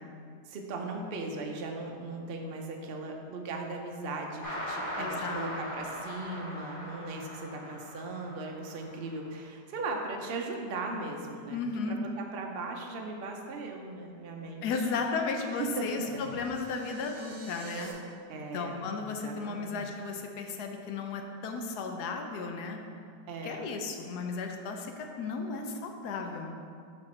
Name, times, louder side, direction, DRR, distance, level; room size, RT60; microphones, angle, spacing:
voice 1, 0.5-11.6 11.9-14.6 15.6-16.2 18.3-18.9 19.2-19.8 23.3-23.6, right 3 dB, 70° right, 2 dB, 0.5 m, -38 dB
sound 1, 4.4-9.2, equal, 30° left, 1.8 m, -40 dB
voice 2, 5.0-5.5 11.5-12.0 14.6-17.9 18.5-22.8 23.4-26.6, left 4 dB, 75° left, 4 dB, 1.1 m, -34 dB
sound 2, 15.4-17.9, right 5 dB, 45° right, 1.1 m, -48 dB
Sigh, 16.0-16.5, right 1 dB, 10° right, 0.9 m, -50 dB
6.0 x 5.2 x 4.3 m, 2.3 s
omnidirectional pair, 1.8 m